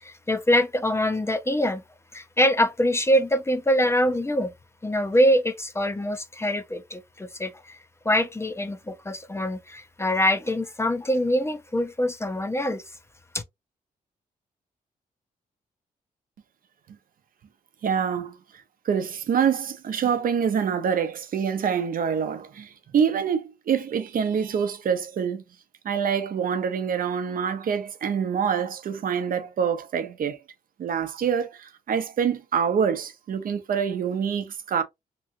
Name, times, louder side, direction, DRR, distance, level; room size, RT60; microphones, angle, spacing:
voice 1, 0.0-1.8 2.1-4.5 4.8-7.8 8.0-12.8 13.3-13.4, equal, 15° left, 0.5 m, -24 dB
voice 2, 17.8-18.4 18.9-25.4 25.8-30.4 30.8-34.8, right 7 dB, 65° right, 0.6 m, -26 dB
3.0 x 2.4 x 2.5 m
cardioid pair, 80°, 16 cm